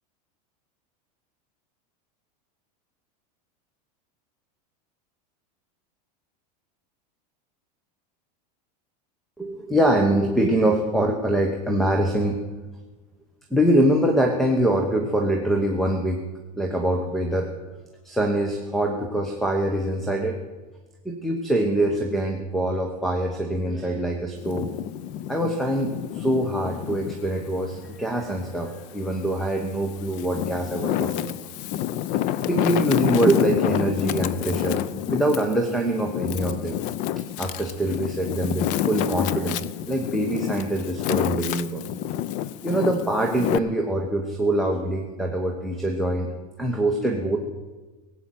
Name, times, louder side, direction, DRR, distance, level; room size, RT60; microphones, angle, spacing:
voice 1, 9.4-12.4 13.5-16.2 16.6-17.5 18.0-20.4 21.0-24.7 25.3-31.3 32.5-34.8 35.1-36.8 37.4-41.8 42.6-46.3 46.6-47.4, right 1 dB, ahead, 4 dB, 1.0 m, -24 dB
Wind, 24.4-27.2 27.7-29.0 29.6-43.6, left 12 dB, 40° left, 0.5 m, -28 dB
17.5 x 8.7 x 7.8 m, 1.2 s
supercardioid pair, 160°, 21 cm